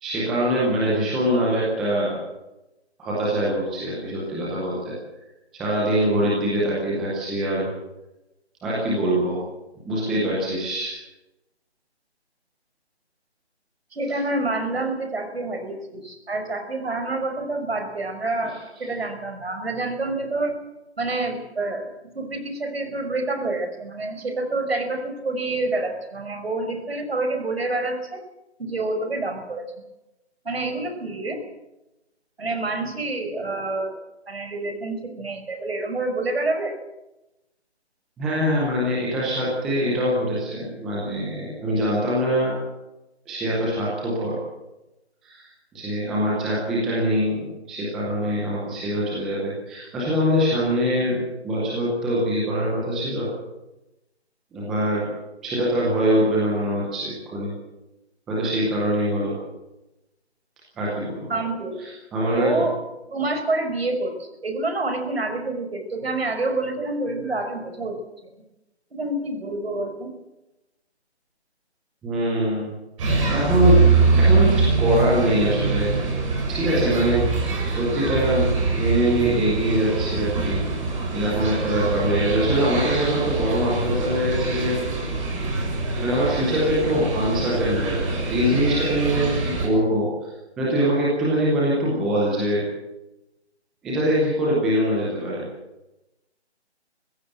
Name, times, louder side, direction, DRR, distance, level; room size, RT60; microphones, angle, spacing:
voice 1, 0.0-2.1 3.0-4.9 5.5-7.7 8.6-9.4 9.8-11.0 38.2-42.6 43.3-44.4 45.2-53.3 54.5-55.0 55.4-57.5 58.3-59.3 60.8-61.2 61.8-62.6 72.0-72.7 73.0-73.8 74.1-75.9 76.5-80.6 81.1-84.8 86.0-90.1 90.6-92.6 93.8-95.5, equal, ahead, -6 dB, 0.7 m, -23 dB
voice 2, 13.9-20.5 21.0-21.9 22.1-28.2 28.6-29.6 30.4-31.4 32.4-36.7 61.3-61.8 62.4-62.8 63.1-67.9 68.9-70.1, right 2 dB, 60° right, 5 dB, 5.5 m, -27 dB
sound 1, 73.0-89.7, right 4 dB, 30° right, 7.3 m, -23 dB
24.5 x 15.5 x 8.0 m, 0.98 s
figure-of-eight pair, 155°, 34 cm